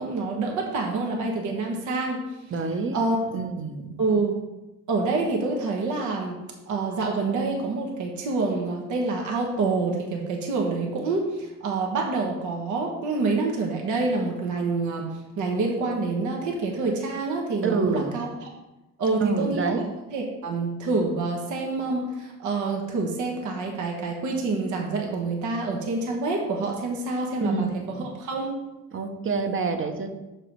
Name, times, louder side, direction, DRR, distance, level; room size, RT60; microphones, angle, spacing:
voice 1, 0.0-2.2 2.9-3.2 4.0-4.4 4.9-6.4 6.7-18.5 19.0-19.8 20.1-27.7 28.0-28.5, right 3 dB, 75° right, 0 dB, 1.3 m, -27 dB
voice 2, 2.5-3.0 3.3-3.8 17.6-18.2 19.2-19.8 27.4-28.0 28.9-30.2, right 4 dB, 40° right, 6 dB, 0.9 m, -27 dB
6.8 x 4.7 x 4.6 m, 1.0 s
cardioid pair, 90°, 30 cm